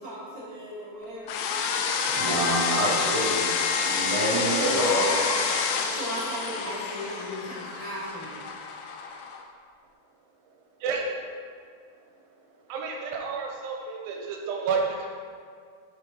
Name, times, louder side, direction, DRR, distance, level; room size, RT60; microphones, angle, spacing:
voice 1, 0.0-1.5 3.8-5.4 5.9-8.4, right 1 dB, 70° left, -11 dB, 0.8 m, -35 dB
sound 1, 1.3-9.4, left 6 dB, 90° left, 2.5 m, -28 dB
voice 2, 2.1-3.4 3.8-5.2, right 1 dB, 50° right, -7 dB, 3.1 m, -26 dB
voice 3, 12.7-15.1, right 5 dB, 85° right, 0 dB, 3.1 m, -30 dB
7.9 x 4.8 x 5.0 m, 2.1 s
omnidirectional pair, 5.5 m